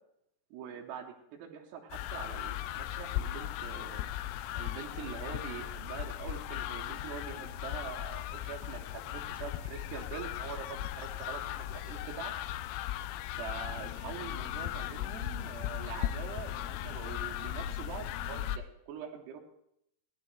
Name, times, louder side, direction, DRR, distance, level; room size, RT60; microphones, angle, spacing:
voice 1, 0.5-4.1 4.5-12.3 13.3-19.4, right 8 dB, 80° right, -1 dB, 3.3 m, -44 dB
sound 1, 1.9-18.6, left 12 dB, 80° left, 2.2 m, -37 dB
18.5 x 11.5 x 3.1 m, 0.77 s
omnidirectional pair, 4.8 m